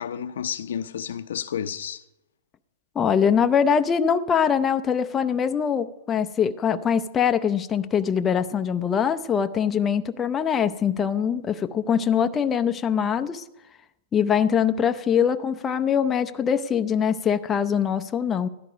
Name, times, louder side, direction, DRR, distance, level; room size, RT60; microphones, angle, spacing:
voice 1, 0.0-2.0, left 8 dB, 80° left, 0.7 m, -31 dB
voice 2, 3.0-13.4 14.1-18.5, left 7 dB, 20° left, 0.6 m, -23 dB
15.5 x 11.5 x 5.0 m
hypercardioid pair, 135°, 0 cm